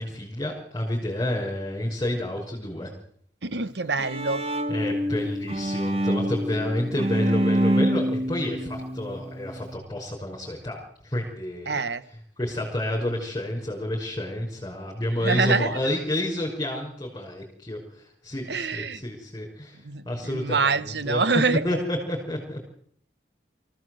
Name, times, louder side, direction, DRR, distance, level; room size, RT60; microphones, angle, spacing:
voice 1, 0.0-2.9 4.7-10.8 11.0-11.8 12.4-19.8 20.1-21.2 21.6-22.6, left 1 dB, 20° left, -3 dB, 5.5 m, -30 dB
voice 2, 3.4-4.4 11.7-12.0 15.2-15.8 18.5-19.0 19.8-21.6, right 4 dB, 70° right, 15 dB, 1.1 m, -25 dB
Bowed string instrument, 3.7-9.8, equal, 30° right, 2.0 m, -26 dB
25.0 x 16.0 x 7.9 m, 0.62 s
head